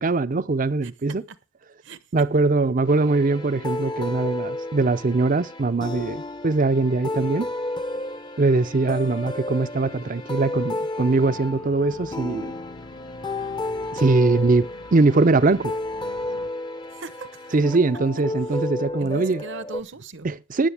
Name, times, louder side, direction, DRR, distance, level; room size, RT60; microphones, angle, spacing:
voice 1, 0.0-1.2 2.1-7.5 8.4-12.5 13.9-15.7 17.5-19.4 20.2-20.7, right 3 dB, 40° right, 0.5 m, -21 dB
voice 2, 0.8-1.4 1.8-2.0 16.9-17.6 18.5-18.6 19.0-20.3, right 4 dB, 60° right, 0.9 m, -40 dB
sound 1, 2.9-19.8, left 2 dB, 20° left, 0.6 m, -32 dB
Organ, 11.1-16.5, left 2 dB, 75° left, 1.2 m, -46 dB
15.5 x 10.5 x 3.4 m
head